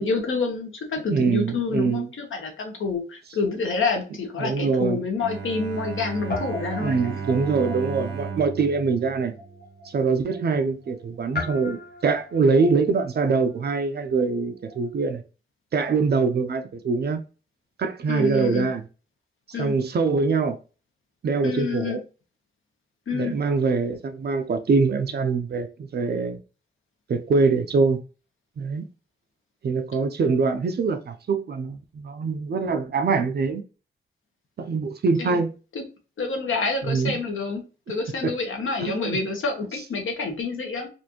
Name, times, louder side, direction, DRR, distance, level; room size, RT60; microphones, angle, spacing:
voice 1, 0.0-7.0 18.1-18.7 19.5-19.7 21.4-22.0 23.1-23.3 35.2-35.4 35.7-35.8 36.2-37.6 37.9-40.9, left 4 dB, 80° left, 1.1 m, -28 dB
voice 2, 1.1-2.1 4.4-5.0 6.8-9.3 9.9-15.2 15.7-17.2 17.8-18.8 19.6-20.6 21.2-22.0 23.1-26.4 27.1-28.0 28.6-28.9 29.6-33.6 34.6-35.5 36.8-37.2 38.2-38.3 38.8-39.2, right 4 dB, 55° right, 0.5 m, -23 dB
Guitar, 4.2-6.0 6.3-14.9, left 3 dB, 50° left, 0.9 m, -39 dB
Bowed string instrument, 5.2-10.2, right 6 dB, 75° right, 1.0 m, -35 dB
4.3 x 2.6 x 2.8 m
wide cardioid pair, 180°, 21 cm